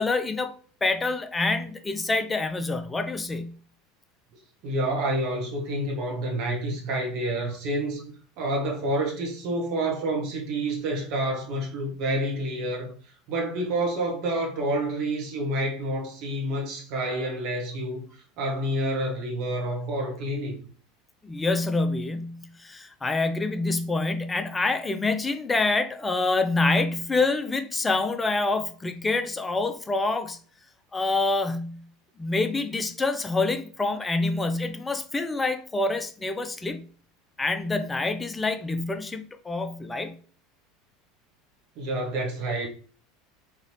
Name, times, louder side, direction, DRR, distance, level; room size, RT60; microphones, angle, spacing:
voice 1, 0.0-3.5 21.2-30.4 30.9-31.8 32.2-36.9 37.4-40.1, left 3 dB, 15° left, 0.5 m, -26 dB
voice 2, 4.6-12.9 13.3-20.6 41.8-42.7, right 1 dB, 50° right, 1.1 m, -28 dB
3.9 x 2.9 x 3.1 m
figure-of-eight pair, 75°, 0 cm